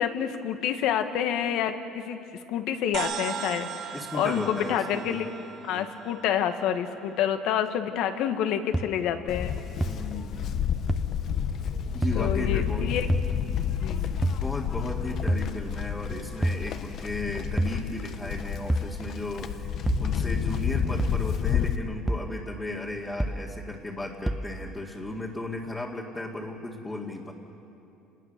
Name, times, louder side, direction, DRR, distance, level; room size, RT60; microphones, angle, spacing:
voice 1, 0.0-2.2 2.5-5.3 5.6-9.6 12.1-13.1 13.8-14.1, left 9 dB, 70° left, 8 dB, 1.6 m, -28 dB
sound 1, 2.9-7.5, right 7 dB, 55° right, 1.8 m, -38 dB
voice 2, 3.9-5.3 5.7-5.9 9.8-10.6 11.9-12.9 13.8-27.3, left 2 dB, 15° left, -4 dB, 2.2 m, -35 dB
sound 2, 8.7-8.8 9.8-9.9 10.9-11.0 12.0-12.2 13.1-13.3 14.2-14.4 15.3-15.5 16.4-16.6 17.6-17.8 18.7-18.9 19.9-20.1 21.0-21.2 22.1-22.3 23.2-23.4 24.3-24.5, right 1 dB, 5° right, 0.9 m, -26 dB
Livestock farm animals working animals, 9.3-21.8, left 8 dB, 50° left, 1.1 m, -30 dB
29.0 x 20.5 x 6.8 m, 2.7 s
cardioid pair, 115°, 0 cm